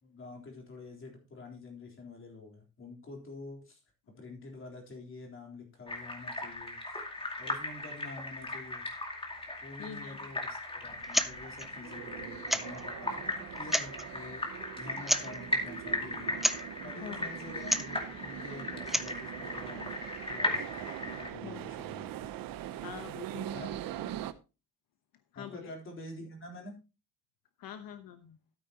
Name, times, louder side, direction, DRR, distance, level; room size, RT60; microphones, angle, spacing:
voice 1, 0.0-3.8 4.2-6.8 7.4-8.9 9.6-14.5 14.8-16.3 16.8-19.9 20.3-22.3 23.5-23.8 25.3-26.7, left 2 dB, 35° left, 1 dB, 3.8 m, -47 dB
sound 1, 5.9-21.3, left 2 dB, 15° left, 2.4 m, -38 dB
voice 2, 9.8-10.2 17.0-17.3 21.4-21.6 22.8-23.5 25.3-25.7 27.6-28.4, left 9 dB, 80° left, 9 dB, 1.0 m, -44 dB
sound 2, 10.8-24.3, right 11 dB, 80° right, 0.9 m, -42 dB
sound 3, 11.0-11.3 11.6-11.7 12.5-12.8 13.6-14.1 15.0-15.4 16.4-16.6 17.6-17.9 18.7-19.2, equal, ahead, 0.4 m, -30 dB
13.0 x 8.6 x 2.9 m, 0.30 s
cardioid pair, 140°, 34 cm